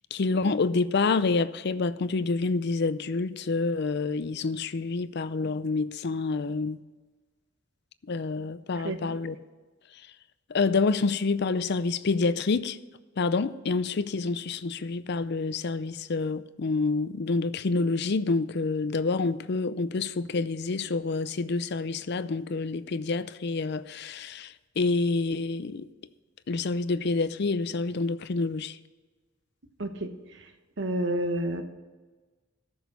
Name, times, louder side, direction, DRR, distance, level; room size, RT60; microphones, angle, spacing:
voice 1, 0.1-6.8 8.1-9.4 10.5-12.8 13.2-25.9 26.5-28.8, left 3 dB, 55° left, 0.5 m, -28 dB
voice 2, 8.8-9.2 29.8-30.5 30.8-31.6, right 1 dB, 60° right, 1.1 m, -30 dB
14.0 x 6.3 x 5.4 m
head